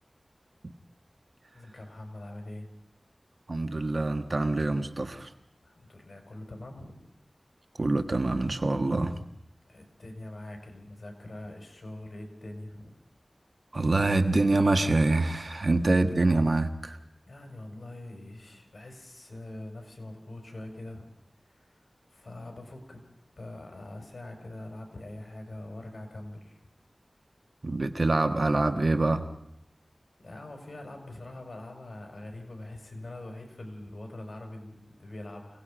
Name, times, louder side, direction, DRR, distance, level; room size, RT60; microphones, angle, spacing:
voice 1, 1.5-2.7 5.6-7.0 9.7-12.9 17.3-21.1 21.4-21.8 22.1-23.0 23.4-26.6 30.2-35.6, left 1 dB, 70° left, 3 dB, 5.1 m, -43 dB
voice 2, 3.5-5.3 7.8-9.2 13.7-17.0 27.6-29.2, right 2 dB, 65° right, 7 dB, 1.5 m, -25 dB
28.0 x 18.0 x 5.2 m, 0.76 s
wide cardioid pair, 65°, 0 cm